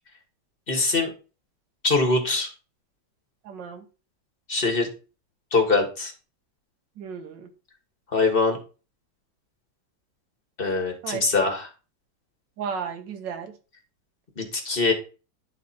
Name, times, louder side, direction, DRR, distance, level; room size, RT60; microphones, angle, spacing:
voice 1, 0.7-1.1 1.8-2.5 4.5-4.9 5.5-6.1 8.1-8.6 10.6-11.7 14.4-14.9, left 3 dB, 30° left, 3 dB, 1.6 m, -23 dB
voice 2, 3.4-3.8 7.0-7.5 11.0-11.2 12.6-13.5, right 6 dB, 80° right, 6 dB, 1.5 m, -34 dB
10.5 x 4.0 x 4.2 m, 0.34 s
omnidirectional pair, 2.0 m